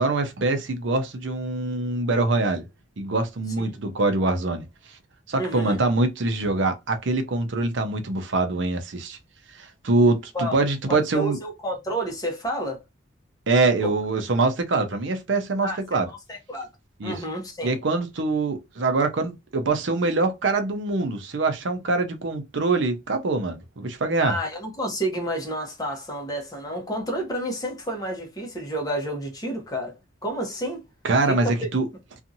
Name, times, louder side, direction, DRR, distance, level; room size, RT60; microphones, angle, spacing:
voice 1, 0.0-2.6 3.0-4.6 5.3-9.2 9.5-11.4 13.5-16.1 17.0-17.2 17.6-24.4 31.0-31.9, right 3 dB, 70° right, 0.6 m, -24 dB
voice 2, 5.4-5.8 10.3-10.6 10.9-12.8 13.8-13.9 15.6-16.7 17.0-17.8 24.2-29.9 30.2-30.8 31.3-31.7, right 1 dB, 20° left, 0.9 m, -30 dB
2.7 x 2.4 x 2.6 m
head